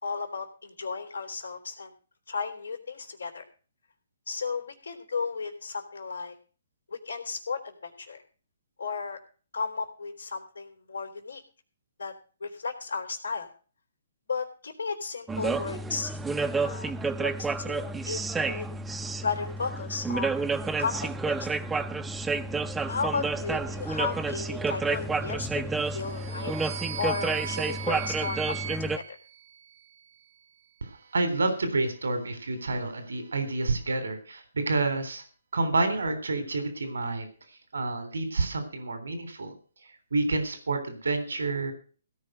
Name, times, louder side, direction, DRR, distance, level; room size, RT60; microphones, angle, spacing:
voice 1, 0.0-1.9 2.3-3.4 4.3-6.3 6.9-8.2 8.8-9.2 9.5-11.4 12.0-12.1 12.4-13.5 14.3-16.1 16.6-16.9 17.2-18.7 19.2-20.4 20.8-21.5 22.8-25.6 25.9-26.5 27.0-29.2, left 5 dB, 90° left, 4 dB, 3.3 m, -34 dB
sound 1, 15.3-29.0, right 3 dB, 10° right, 0.8 m, -30 dB
sound 2, 25.8-30.1, right 9 dB, 60° right, 0.9 m, -39 dB
voice 2, 30.8-35.2 35.5-39.6 40.1-41.7, right 3 dB, 85° right, 9 dB, 3.5 m, -29 dB
16.5 x 5.7 x 7.8 m, 0.38 s
hypercardioid pair, 140°, 0 cm